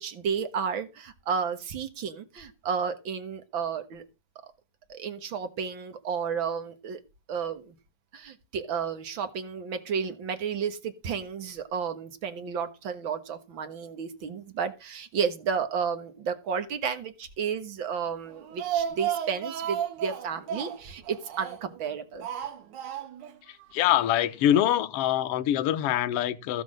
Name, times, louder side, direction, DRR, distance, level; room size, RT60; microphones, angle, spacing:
voice 1, 0.0-4.0 4.9-7.0 7.3-7.7 8.1-22.3, right 6 dB, 50° right, 1.5 m, -32 dB
Speech, 18.3-21.8 22.2-23.4 23.6-23.7 24.0-24.1, right 9 dB, 65° right, 2.7 m, -33 dB
voice 2, 23.7-26.6, left 11 dB, 65° left, 1.5 m, -24 dB
15.5 x 6.1 x 6.4 m
omnidirectional pair, 4.0 m